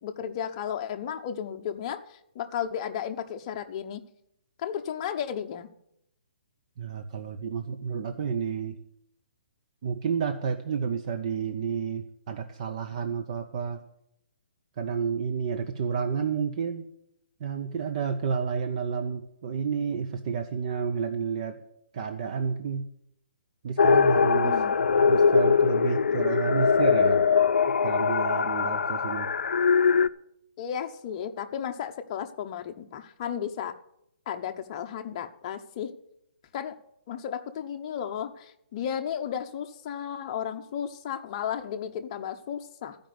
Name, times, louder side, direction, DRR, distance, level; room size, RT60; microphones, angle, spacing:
voice 1, 0.0-4.0 4.6-5.7 24.3-24.8 30.6-33.7 34.3-35.9 36.5-36.8 37.1-43.0, left 9 dB, 30° left, 6 dB, 0.8 m, -34 dB
voice 2, 6.8-8.8 9.8-13.8 14.8-16.9 17.4-21.6 21.9-22.8 23.6-24.6 24.9-27.3 27.8-29.3, right 6 dB, 35° right, 7 dB, 0.7 m, -30 dB
sound 1, 23.8-30.1, left 6 dB, 90° left, 0.5 m, -22 dB
13.5 x 5.2 x 9.3 m, 0.77 s
hypercardioid pair, 165°, 6 cm